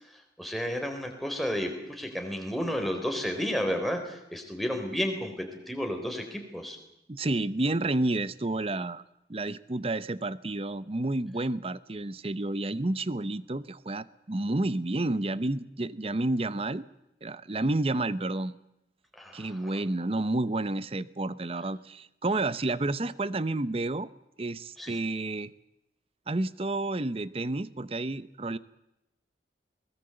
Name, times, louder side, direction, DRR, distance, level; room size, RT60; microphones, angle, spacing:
voice 1, 0.4-6.8 19.2-19.6 24.8-24.9, equal, ahead, 3 dB, 3.7 m, -32 dB
voice 2, 7.1-9.0 9.3-16.9 17.2-18.6 19.3-24.1 24.4-25.5 26.3-28.6, right 2 dB, 35° right, 16 dB, 0.7 m, -30 dB
22.5 x 19.5 x 7.8 m, 0.85 s
head